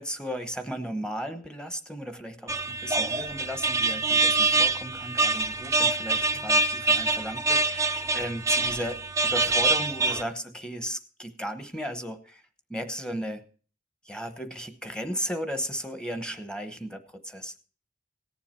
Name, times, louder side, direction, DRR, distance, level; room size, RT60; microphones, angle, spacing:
voice 1, 0.0-12.4 12.7-13.5 14.0-17.5, equal, 5° left, 9 dB, 0.9 m, -35 dB
sound 1, 2.5-10.2, right 3 dB, 15° right, 0.4 m, -25 dB
18.0 x 7.2 x 4.4 m, 0.41 s
head